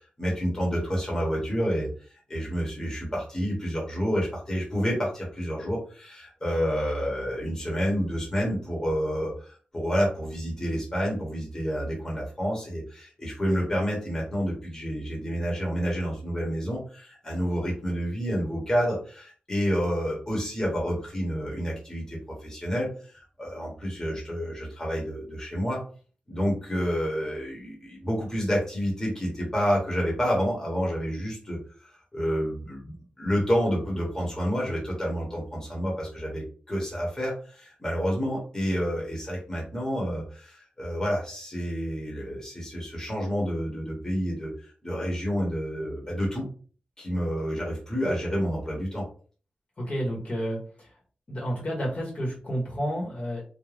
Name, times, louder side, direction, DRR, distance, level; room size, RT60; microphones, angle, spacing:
voice 1, 0.2-25.8 26.3-46.5 47.0-49.1, equal, 15° left, -3 dB, 1.0 m, -29 dB
voice 2, 49.8-50.9 51.3-53.4, equal, 45° left, -3 dB, 1.0 m, -30 dB
2.4 x 2.1 x 3.2 m, 0.41 s
wide cardioid pair, 135°, 3 cm